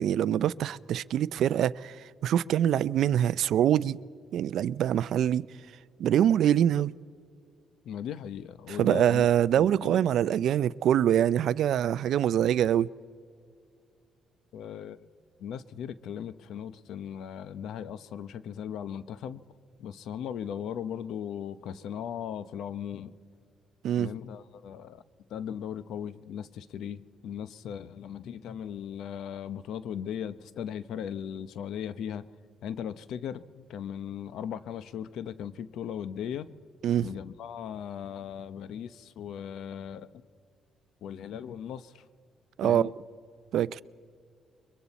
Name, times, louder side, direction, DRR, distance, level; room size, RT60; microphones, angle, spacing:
voice 1, 0.0-4.0 4.3-5.5 6.0-6.9 8.7-12.9 23.8-24.1 36.8-37.1 42.6-42.9 43.5-43.8, right 10 dB, 75° right, 0.4 m, -24 dB
voice 2, 7.8-9.3 9.6-10.0 14.5-15.1 15.4-19.4 19.8-23.1 24.0-25.0 25.3-32.2 32.6-36.5 37.0-40.1 41.0-42.0 42.6-42.9, left 9 dB, 80° left, 0.7 m, -38 dB
29.5 x 23.0 x 4.1 m
cardioid pair, 90°, 0 cm